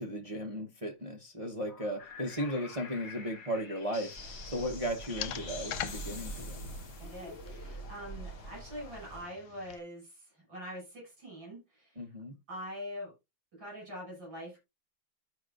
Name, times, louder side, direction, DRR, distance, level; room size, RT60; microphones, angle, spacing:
voice 1, 0.0-6.6 12.0-12.4, equal, 50° right, 0.4 m, -36 dB
sound 1, 1.7-8.1, left 5 dB, 65° left, 2.3 m, -48 dB
sound 2, 4.0-9.8, left 12 dB, 85° left, 1.4 m, -45 dB
sound 3, 4.1-9.2, right 2 dB, 35° left, 3.2 m, -45 dB
voice 2, 7.0-12.0 12.5-13.1 13.6-14.6, equal, 65° right, 6.7 m, -44 dB
13.5 x 4.8 x 2.5 m
omnidirectional pair, 2.2 m